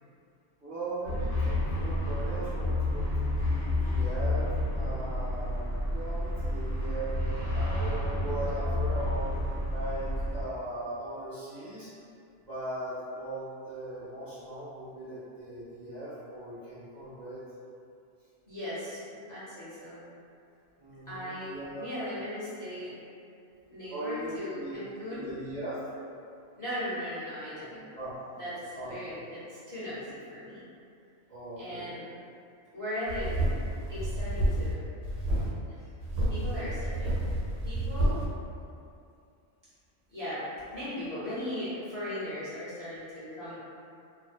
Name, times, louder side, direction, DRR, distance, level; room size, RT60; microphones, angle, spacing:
voice 1, 0.6-9.3 9.7-11.9 12.4-17.4 20.8-21.9 23.9-24.8 25.1-25.8 27.9-28.2 28.7-29.1 31.3-31.9, right 1 dB, 40° right, -15 dB, 0.9 m, -39 dB
sound 1, 1.0-10.4, left 1 dB, 60° left, 0.8 m, -30 dB
voice 2, 18.5-19.0 19.3-20.0 21.1-22.9 23.7-25.3 26.6-27.8 28.4-30.6 31.6-32.0 32.7-33.4 33.9-34.8 36.3-37.1 37.6-38.2 40.1-40.4 40.7-43.6, left 1 dB, 20° left, -13 dB, 0.6 m, -38 dB
sound 2, 33.1-34.7 35.0-35.5 36.0-38.3, right 1 dB, 85° right, 1.0 m, -29 dB
2.5 x 2.1 x 2.4 m, 2.5 s
omnidirectional pair, 1.2 m